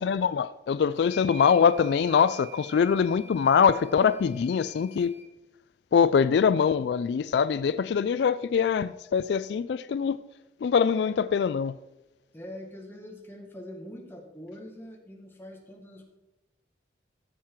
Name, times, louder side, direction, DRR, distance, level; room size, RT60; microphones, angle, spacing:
voice 1, 0.0-5.1 5.9-10.2 10.6-11.8, left 6 dB, 70° left, 0.3 m, -23 dB
sound 1, 1.0-5.3, right 1 dB, 5° right, 1.7 m, -48 dB
voice 2, 12.3-16.1, left 1 dB, 10° left, 1.6 m, -43 dB
14.5 x 7.5 x 4.6 m
head